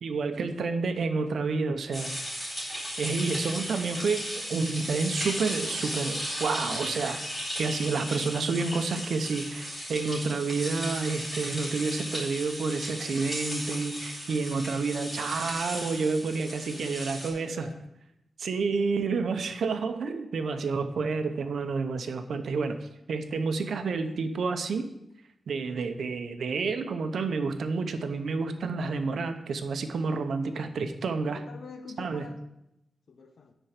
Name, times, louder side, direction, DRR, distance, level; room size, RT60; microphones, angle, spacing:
voice 1, 0.0-2.1 3.0-7.2 7.5-17.7 18.4-24.9 25.5-31.4 32.0-32.3, right 4 dB, 75° right, 7 dB, 0.9 m, -29 dB
sound 1, 1.9-17.3, equal, 20° left, 4.0 m, -36 dB
voice 2, 16.6-17.8 31.3-32.4 33.1-33.5, left 4 dB, 65° left, 6 dB, 0.7 m, -47 dB
10.0 x 4.6 x 6.6 m, 0.85 s
wide cardioid pair, 155°, 0 cm